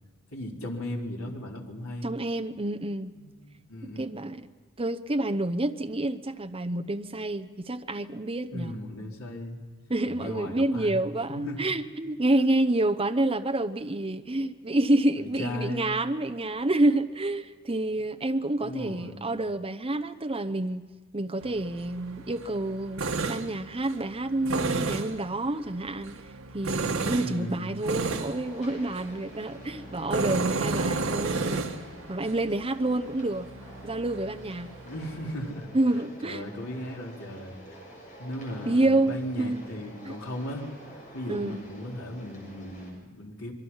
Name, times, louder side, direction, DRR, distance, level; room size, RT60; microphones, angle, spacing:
voice 1, 0.3-2.1 3.1-4.1 8.5-9.6 10.0-11.0 11.3-11.7 15.1-16.0 18.6-19.2 27.2-27.8 34.8-35.7 36.2-37.6 38.2-40.6 41.1-43.5, left 1 dB, 80° left, -1 dB, 4.0 m, -37 dB
voice 2, 2.0-3.1 3.8-4.5 4.8-8.8 9.9-20.9 21.1-31.7 32.1-33.5 33.8-34.7 35.7-36.4 38.6-39.6 40.1-40.2 41.3-41.6, right 2 dB, 25° right, 8 dB, 0.8 m, -28 dB
Tools, 21.4-35.5, right 3 dB, 80° right, 1.6 m, -33 dB
sound 1, 27.9-42.9, right 1 dB, 40° left, 6.9 m, -48 dB
26.5 x 23.0 x 5.7 m, 1.4 s
head